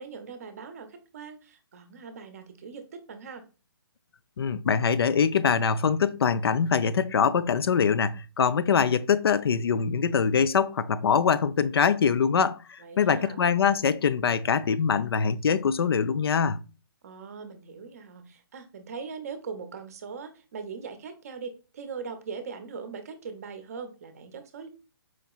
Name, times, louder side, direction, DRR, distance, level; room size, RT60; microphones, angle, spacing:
voice 1, 0.0-3.5 12.8-13.4 17.0-24.7, right 5 dB, 40° right, 0.6 m, -40 dB
voice 2, 4.4-16.6, left 6 dB, 80° left, 0.4 m, -23 dB
4.5 x 2.8 x 2.3 m
hypercardioid pair, 165°, 13 cm